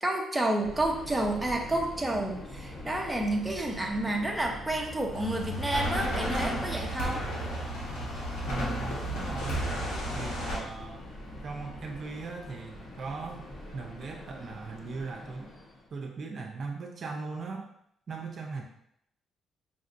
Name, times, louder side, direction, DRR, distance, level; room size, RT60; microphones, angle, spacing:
voice 1, 0.0-7.2, right 1 dB, 10° right, 1 dB, 0.7 m, -30 dB
Subway metro underground, 0.6-15.9, left 1 dB, 65° left, 1.3 m, -44 dB
sound 1, 5.1-10.6, equal, 90° left, 1.1 m, -33 dB
voice 2, 8.5-9.7 10.1-11.0 11.4-13.5 13.7-15.5 15.9-17.7 18.1-18.6, right 4 dB, 50° right, 2 dB, 0.5 m, -39 dB
5.1 x 2.6 x 2.5 m, 0.73 s
cardioid pair, 90°, 0 cm